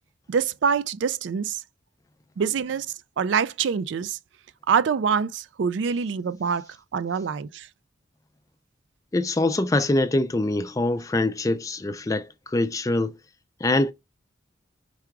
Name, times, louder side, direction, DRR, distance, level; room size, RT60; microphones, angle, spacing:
voice 1, 0.3-1.6 2.4-4.2 4.7-7.7, right 6 dB, 70° right, 0.3 m, -25 dB
voice 2, 9.1-13.2 13.6-13.9, left 2 dB, 15° left, 0.3 m, -24 dB
4.7 x 2.3 x 4.5 m
head